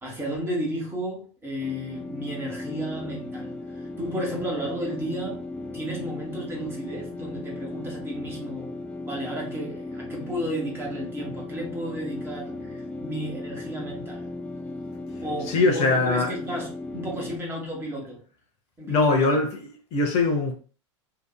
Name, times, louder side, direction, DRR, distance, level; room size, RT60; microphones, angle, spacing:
voice 1, 0.0-5.4 5.7-8.7 9.1-14.3 15.2-18.2 18.8-19.5, equal, 15° right, 1.2 m, -33 dB
sound 1, 1.6-17.4, left 2 dB, 10° left, 0.4 m, -36 dB
voice 2, 15.5-16.3 18.9-20.5, left 3 dB, 40° left, 0.7 m, -22 dB
2.8 x 2.5 x 2.2 m
hypercardioid pair, 90°, 16 cm